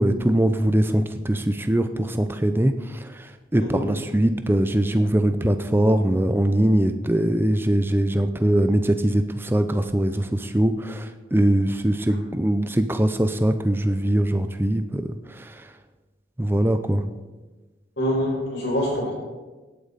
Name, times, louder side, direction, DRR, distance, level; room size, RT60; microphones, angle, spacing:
voice 1, 0.0-15.6 16.4-17.0, right 1 dB, 10° right, 9 dB, 0.6 m, -22 dB
voice 2, 18.0-19.1, equal, 65° left, -4 dB, 4.9 m, -25 dB
17.0 x 8.6 x 4.1 m, 1.3 s
head